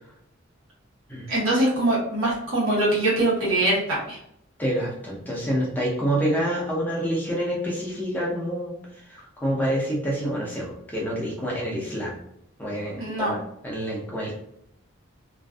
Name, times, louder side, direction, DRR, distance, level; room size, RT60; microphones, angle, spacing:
voice 1, 1.3-4.2 13.0-13.4, right 1 dB, 80° right, -7 dB, 1.1 m, -23 dB
voice 2, 4.6-12.2 12.6-14.3, equal, 10° left, -4 dB, 0.6 m, -27 dB
2.5 x 2.4 x 2.2 m, 0.77 s
head